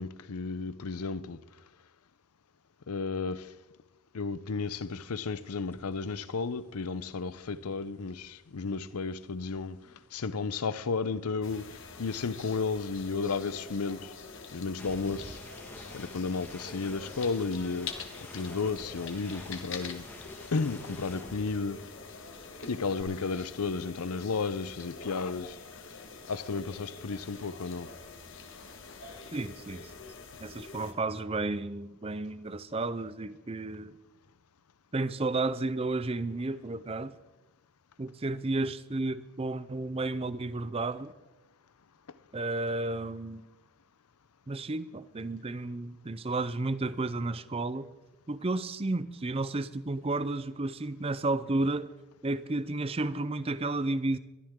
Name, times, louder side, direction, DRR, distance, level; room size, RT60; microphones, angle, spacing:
voice 1, 0.0-1.4 2.9-3.5 4.1-9.8 10.1-11.6 12.0-14.1 14.5-15.4 15.9-17.9 18.3-20.1 20.5-21.8 22.6-25.6 26.3-27.9, left 4 dB, 85° left, 0.7 m, -33 dB
sound 1, 5.7-5.9 6.2-10.6 10.8-22.1 22.4-23.0, left 1 dB, 10° left, 1.7 m, -51 dB
sound 2, 11.4-30.9, left 4 dB, 60° left, 1.5 m, -45 dB
voice 2, 29.3-29.9 30.4-34.0 34.9-37.1 38.0-41.1 42.3-43.5 44.5-47.9 48.3-51.9 52.2-54.2, right 2 dB, 25° right, 0.5 m, -32 dB
22.0 x 13.0 x 3.7 m
head